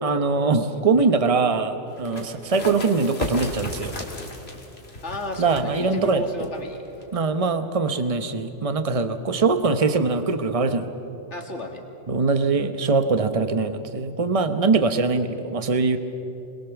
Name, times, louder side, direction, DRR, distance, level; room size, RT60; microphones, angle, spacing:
voice 1, 0.0-3.9 5.4-6.2 7.1-10.9 12.1-16.0, right 4 dB, 30° right, 9 dB, 1.1 m, -22 dB
sound 1, 1.9-7.3, left 2 dB, 60° left, 2.6 m, -36 dB
voice 2, 5.0-6.8 8.9-9.1 11.3-11.8, left 2 dB, 75° left, 3 dB, 2.6 m, -34 dB
26.0 x 21.5 x 7.1 m, 3.0 s
omnidirectional pair, 1.2 m